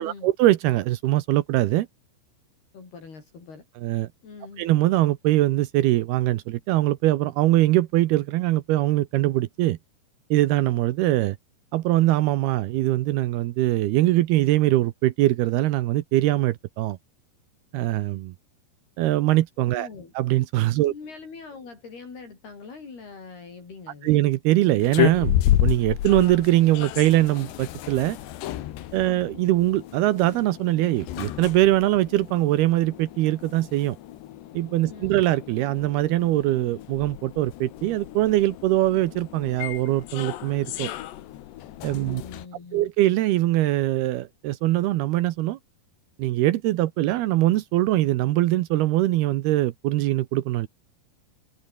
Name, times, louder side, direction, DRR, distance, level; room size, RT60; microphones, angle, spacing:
voice 1, 0.0-1.9 3.8-4.1 4.6-9.8 10.3-11.4 11.7-17.0 17.7-18.3 19.0-19.9 20.2-20.9 24.0-28.2 28.9-34.0 34.5-40.9 41.8-42.2 42.7-45.6 46.2-50.7, right 16 dB, 75° right, 2.6 m, -22 dB
voice 2, 2.7-3.7 4.2-4.6 19.7-20.1 20.8-24.3 29.0-29.3 34.8-35.2 42.0-42.9, left 4 dB, 60° left, 8.5 m, -43 dB
sound 1, 24.8-42.5, left 13 dB, 75° left, 3.6 m, -31 dB
omnidirectional pair, 5.1 m